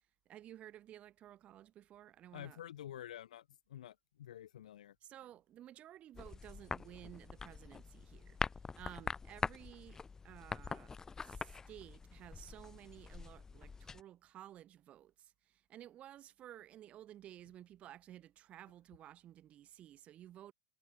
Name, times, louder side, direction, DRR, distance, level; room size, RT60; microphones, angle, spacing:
voice 1, 0.3-2.6 5.0-8.4 8.8-20.5, right 12 dB, 35° right, 4.2 m, -55 dB
voice 2, 2.3-4.9, left 11 dB, 85° left, 1.7 m, -49 dB
sound 1, 6.1-14.0, left 5 dB, 15° left, 1.1 m, -44 dB
hypercardioid pair, 125°, 4 cm